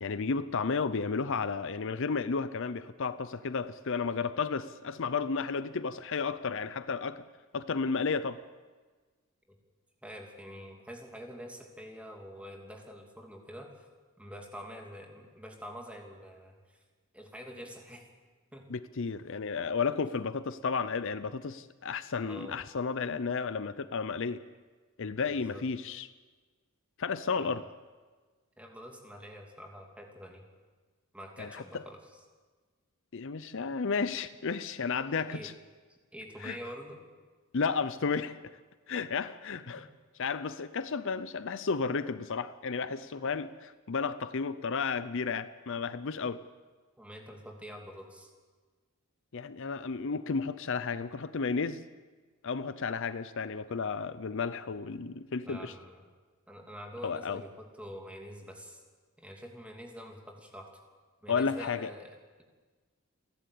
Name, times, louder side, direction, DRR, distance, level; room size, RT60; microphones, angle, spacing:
voice 1, 0.0-7.2 7.5-8.4 18.7-24.4 25.0-26.1 27.0-27.6 31.4-31.8 33.1-35.5 36.4-36.6 37.5-38.4 38.9-39.9 40.2-46.4 49.3-51.8 52.4-55.7 57.0-57.4 61.3-61.9, left 5 dB, 60° left, 14 dB, 0.6 m, -32 dB
voice 2, 10.0-13.7 14.2-16.6 17.1-18.1 18.5-18.6 22.2-22.6 25.3-25.6 27.3-27.6 28.6-30.5 31.1-32.2 35.3-35.5 35.9-37.0 39.7-39.8 47.0-48.3 55.4-56.0 56.5-58.8 59.2-60.7 61.2-62.1, equal, 5° right, 1 dB, 2.9 m, -46 dB
29.5 x 11.5 x 8.5 m, 1.4 s
head